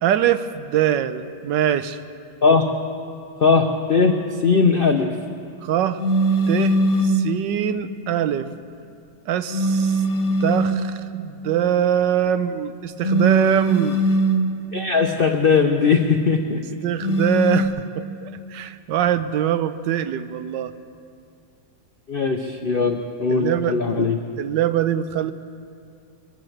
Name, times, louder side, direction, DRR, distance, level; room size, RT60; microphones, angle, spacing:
voice 1, 0.0-2.0 5.6-6.0 6.5-6.8 7.0-8.5 9.3-10.0 10.4-14.0 16.8-20.7 22.7-22.9 23.3-24.0 24.4-25.3, right 10 dB, 75° right, 12 dB, 1.2 m, -23 dB
voice 2, 3.4-4.2 4.4-5.1 14.7-16.6 22.1-24.2, left 5 dB, 80° left, 4 dB, 0.5 m, -19 dB
sound 1, 6.0-7.3 9.5-10.9 13.0-14.5 17.0-17.7, right 1 dB, 50° left, 1.4 m, -20 dB
23.5 x 8.2 x 7.3 m, 2.4 s
omnidirectional pair, 2.0 m